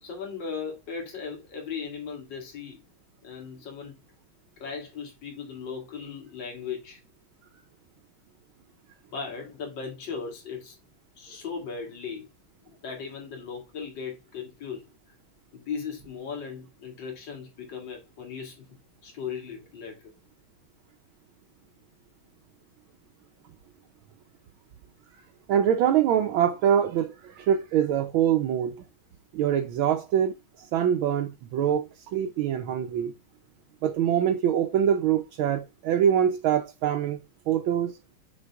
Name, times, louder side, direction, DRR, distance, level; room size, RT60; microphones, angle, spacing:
voice 1, 0.0-2.8 3.2-4.0 4.6-7.0 9.1-10.8 11.2-12.3 12.6-14.9 15.5-18.7 19.0-20.1, left 6 dB, 60° left, 2.6 m, -37 dB
voice 2, 25.5-28.8 29.3-33.1 33.8-37.2 37.5-38.0, right 9 dB, 75° right, 1.4 m, -24 dB
6.4 x 4.7 x 3.4 m
omnidirectional pair, 2.3 m